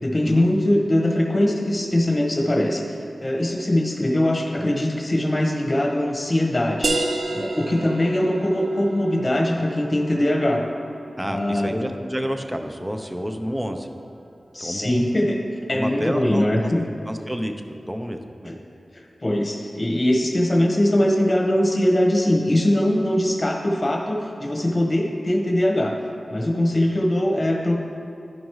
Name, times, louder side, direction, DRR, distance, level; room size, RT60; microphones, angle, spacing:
voice 1, 0.0-2.8 3.2-6.9 7.3-10.6 11.2-11.7 14.5-15.4 15.7-16.8 18.4-18.5 18.9-25.9 26.3-27.8, left 1 dB, 35° left, 0 dB, 1.3 m, -21 dB
sound 1, 6.8-12.2, right 2 dB, 65° right, 0.5 m, -31 dB
voice 2, 11.2-13.9 14.6-14.9 15.7-16.7 17.1-18.6, equal, 15° right, 5 dB, 0.7 m, -29 dB
12.0 x 5.1 x 3.2 m, 2.9 s
cardioid pair, 55°, 0 cm